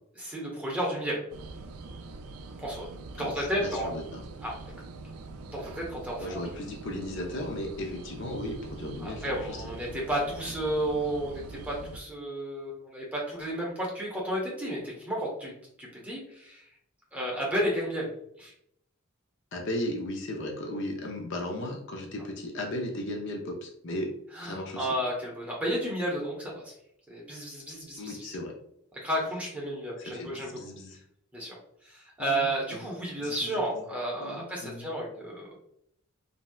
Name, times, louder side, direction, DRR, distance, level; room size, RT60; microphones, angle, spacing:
voice 1, 0.2-1.2 2.6-2.9 3.1-3.9 4.4-4.6 5.5-6.3 9.0-15.5 15.8-16.6 17.1-18.1 18.4-18.5 24.3-26.7 27.1-28.4 29.0-30.6 31.3-31.5 31.8-35.5, right 1 dB, 5° right, -3 dB, 0.8 m, -32 dB
sound 1, 1.3-12.0, right 3 dB, 85° right, 0.4 m, -44 dB
voice 2, 3.2-4.2 6.2-9.6 19.5-24.1 24.4-24.9 28.0-28.5 30.1-31.0 32.2-32.9 33.2-33.8 34.2-34.9, left 1 dB, 60° left, 1 dB, 0.6 m, -36 dB
3.1 x 2.7 x 2.2 m, 0.73 s
head